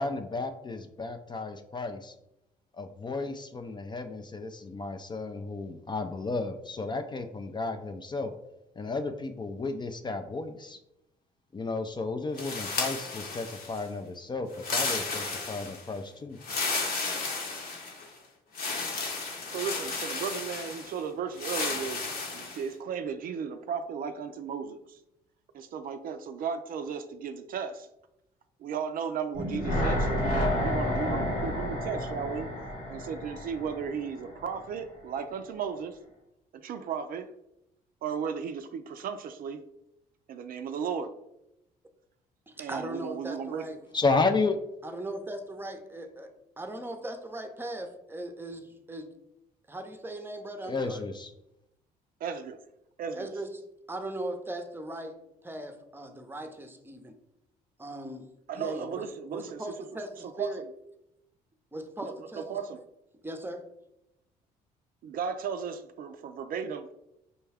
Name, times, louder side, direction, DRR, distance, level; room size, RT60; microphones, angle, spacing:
voice 1, 0.0-2.1 2.8-8.3 8.8-10.8 11.5-16.4 43.9-44.6 50.6-51.3, left 3 dB, 25° left, 7 dB, 0.4 m, -32 dB
sound 1, 12.4-13.9 14.5-15.9 16.4-18.1 18.5-20.9 21.4-22.6, left 4 dB, 60° left, 1.0 m, -33 dB
voice 2, 19.5-22.0 22.3-25.0 25.5-27.9 28.6-32.5 32.9-36.0 36.5-37.3 38.0-39.6 40.3-41.1 42.6-43.7 52.2-52.6 53.0-53.3 58.5-59.6 60.4-60.5 62.0-62.8 65.0-66.9, right 6 dB, 55° right, 8 dB, 0.4 m, -35 dB
sound 2, 29.3-34.5 34.8-34.9, left 1 dB, 90° left, 1.2 m, -30 dB
voice 3, 42.5-43.8 44.8-49.1 49.7-51.0 53.1-55.2 55.4-57.2 57.8-60.6 61.7-62.5 63.2-63.7, right 1 dB, 10° right, 5 dB, 0.7 m, -39 dB
5.3 x 2.2 x 3.4 m, 0.86 s
supercardioid pair, 65°, 17 cm